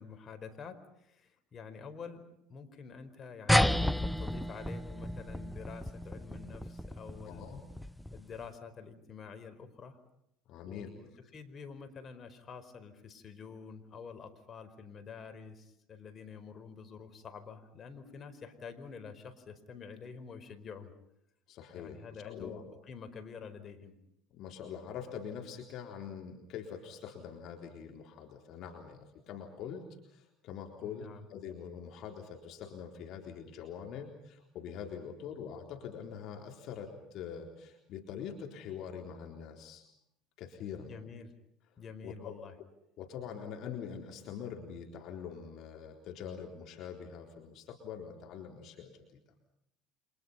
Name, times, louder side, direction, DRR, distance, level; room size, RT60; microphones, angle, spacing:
voice 1, 0.0-7.4 8.1-10.0 10.6-20.9 21.7-23.9 30.8-31.3 40.8-41.3 41.8-42.5, left 5 dB, 40° left, 8 dB, 4.9 m, -48 dB
sound 1, 3.5-8.4, left 1 dB, ahead, 0.9 m, -32 dB
voice 2, 7.2-7.6 10.5-10.9 21.5-22.6 24.3-39.8 40.4-40.9 42.0-42.4 43.0-49.2, left 7 dB, 55° left, 3 dB, 3.9 m, -44 dB
30.0 x 26.5 x 5.7 m, 0.79 s
hypercardioid pair, 70°, 0 cm